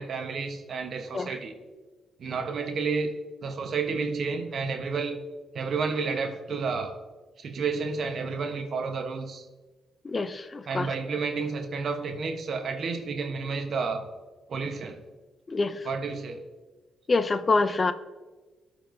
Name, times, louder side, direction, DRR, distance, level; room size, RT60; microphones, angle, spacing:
voice 1, 0.0-1.5 2.2-3.1 3.4-5.2 5.5-6.9 7.4-9.5 10.7-14.1 14.5-15.0 15.8-16.4, right 4 dB, 60° right, 6 dB, 1.0 m, -31 dB
voice 2, 10.0-10.9 15.5-15.9 17.1-17.9, left 3 dB, 40° left, 13 dB, 0.4 m, -26 dB
13.5 x 4.5 x 2.6 m, 1.3 s
hypercardioid pair, 50°, 0 cm